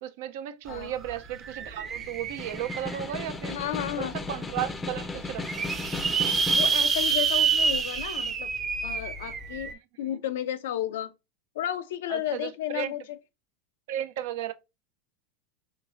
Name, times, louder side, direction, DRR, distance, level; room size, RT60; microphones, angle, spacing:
voice 1, 0.0-3.6 4.0-5.8 10.1-10.2 12.1-12.9 13.9-14.5, right 11 dB, 70° right, 0.5 m, -35 dB
sound 1, 0.7-0.8 1.1-3.2 3.8-3.9 4.2-4.3 4.5-4.6 5.1-9.7, right 5 dB, 30° right, 0.6 m, -27 dB
Snare drum, 2.2-6.9, left 3 dB, 15° left, 0.5 m, -36 dB
voice 2, 3.5-4.2 6.5-8.5 8.8-11.1 11.6-13.0, left 11 dB, 80° left, 0.5 m, -32 dB
4.4 x 2.9 x 2.4 m
hypercardioid pair, 110°, 0 cm